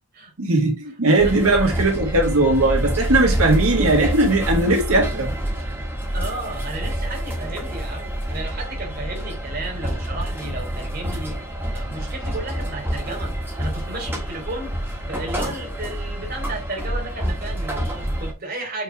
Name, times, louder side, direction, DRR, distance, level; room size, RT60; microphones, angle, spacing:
voice 1, 0.4-5.3, right 2 dB, 90° right, 1.7 m, -19 dB
sound 1, 1.2-18.3, equal, 10° right, 1.5 m, -27 dB
voice 2, 6.1-11.4 11.7-18.8, right 2 dB, 45° right, 3.0 m, -33 dB
8.4 x 3.6 x 4.4 m
head